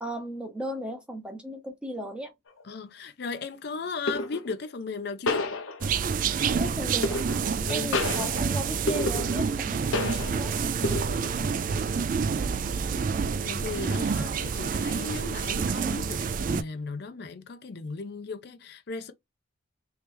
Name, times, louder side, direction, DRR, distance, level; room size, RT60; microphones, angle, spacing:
voice 1, 0.0-2.3 6.6-7.2 7.7-10.5 12.8-13.1, right 1 dB, 5° right, 0.8 m, -36 dB
sound 1, 2.5-2.7 4.1-4.6 5.3-6.2 7.0-7.6 7.9-9.6 9.9-10.5 10.8-11.4, left 2 dB, 90° left, 0.8 m, -30 dB
voice 2, 2.6-5.5 7.6-7.9 11.2-11.8 13.4-19.1, left 4 dB, 55° left, 0.5 m, -37 dB
sound 2, 5.8-16.6, right 5 dB, 40° right, 0.3 m, -28 dB
3.2 x 2.9 x 3.4 m
head